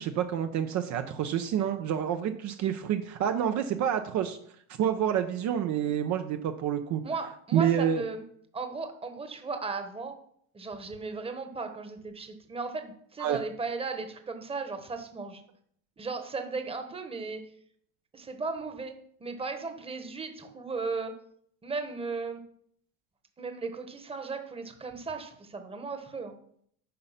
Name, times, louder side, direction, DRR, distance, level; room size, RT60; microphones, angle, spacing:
voice 1, 0.0-4.4 4.8-7.0 7.5-8.0 13.2-13.4, right 9 dB, 50° right, 6 dB, 0.8 m, -28 dB
voice 2, 7.0-8.2 8.5-10.1 10.5-15.4 16.0-17.5 18.1-21.1 21.6-22.4 23.4-26.4, right 4 dB, 15° right, 7 dB, 1.2 m, -36 dB
9.5 x 5.4 x 5.7 m, 0.65 s
cardioid pair, 140°, 35 cm